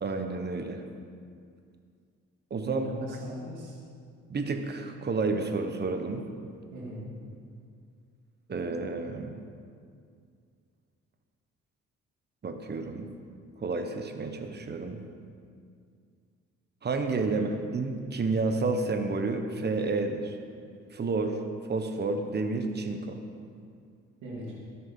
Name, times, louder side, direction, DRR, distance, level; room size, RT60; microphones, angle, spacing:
voice 1, 0.0-0.8 2.5-2.9 4.3-6.2 8.5-9.3 12.4-13.1 13.6-15.0 16.8-20.3 20.9-21.4 21.7-23.2, right 3 dB, 35° right, 6 dB, 1.2 m, -30 dB
voice 2, 2.7-3.8 6.7-7.1 24.2-24.5, equal, 90° right, -5 dB, 2.9 m, -40 dB
12.5 x 9.8 x 5.6 m, 2.2 s
cardioid pair, 90°, 30 cm